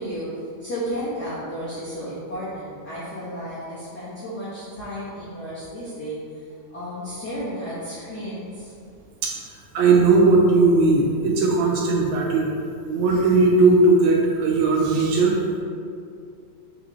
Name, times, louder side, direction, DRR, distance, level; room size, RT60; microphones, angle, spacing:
voice 1, 0.0-8.7, equal, 50° left, -12 dB, 1.2 m, -33 dB
voice 2, 9.7-12.5 12.9-15.4, right 3 dB, 80° right, -1 dB, 1.9 m, -18 dB
6.3 x 4.8 x 3.1 m, 2.4 s
omnidirectional pair, 3.6 m